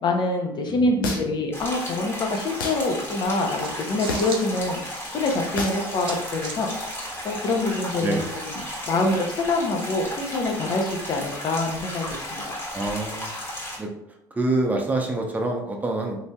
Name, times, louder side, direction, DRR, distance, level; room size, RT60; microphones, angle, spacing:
voice 1, 0.0-4.8 5.1-6.7 7.2-8.6 8.9-12.5, left 2 dB, 45° left, 2 dB, 0.7 m, -25 dB
voice 2, 0.7-1.3 8.0-8.3 12.7-13.3 13.8-13.9 14.3-16.2, right 2 dB, 15° right, 1 dB, 0.7 m, -26 dB
sound 1, 1.0-1.5 2.6-2.8 4.1-4.4 5.6-5.8, left 3 dB, 85° left, 0.5 m, -29 dB
sound 2, 1.5-13.8, equal, 25° left, 1.2 m, -34 dB
sound 3, 3.5-9.2, right 5 dB, 50° right, 0.5 m, -43 dB
3.2 x 2.6 x 2.2 m, 0.81 s
hypercardioid pair, 65°, 11 cm